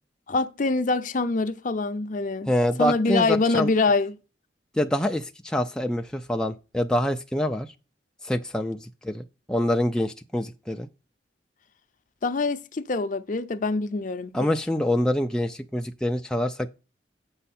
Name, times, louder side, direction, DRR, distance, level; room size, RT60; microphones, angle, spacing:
voice 1, 0.3-2.5 2.8-4.2 12.2-14.3, left 3 dB, 45° left, 0.6 m, -25 dB
voice 2, 2.5-3.7 4.7-7.7 8.2-10.9 14.3-16.7, left 1 dB, 5° left, 0.4 m, -26 dB
8.0 x 5.5 x 4.2 m
head